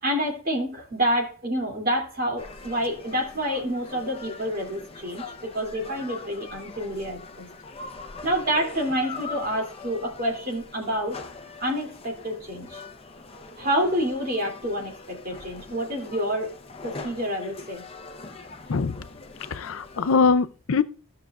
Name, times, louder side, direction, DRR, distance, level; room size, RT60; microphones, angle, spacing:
voice 1, 0.0-7.5 8.2-11.2 11.6-12.8 13.6-16.5 16.8-17.8, equal, 40° right, 2.6 m, -28 dB
sound 1, 2.4-20.2, left 3 dB, 25° left, 0.7 m, -42 dB
voice 2, 18.7-19.0 19.5-20.8, left 5 dB, 70° left, 0.5 m, -22 dB
16.0 x 6.3 x 2.4 m
head